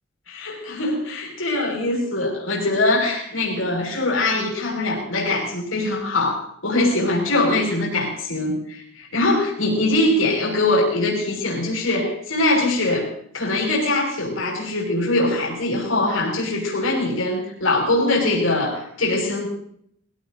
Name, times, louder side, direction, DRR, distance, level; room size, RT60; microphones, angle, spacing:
voice 1, 0.3-13.1 13.3-19.5, left 2 dB, 90° left, -1 dB, 6.1 m, -22 dB
21.0 x 17.5 x 3.9 m, 0.69 s
head